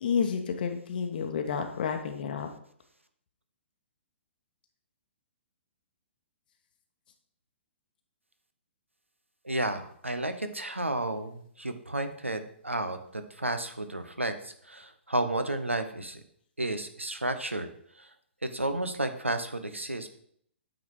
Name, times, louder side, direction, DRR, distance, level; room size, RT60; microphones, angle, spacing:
voice 1, 0.0-2.5, left 6 dB, 45° left, 6 dB, 0.9 m, -30 dB
voice 2, 9.4-16.2 16.6-17.7 17.9-18.1 18.4-20.1, right 1 dB, 85° right, 9 dB, 0.8 m, -32 dB
8.8 x 4.0 x 4.7 m, 0.65 s
figure-of-eight pair, 120°, 7 cm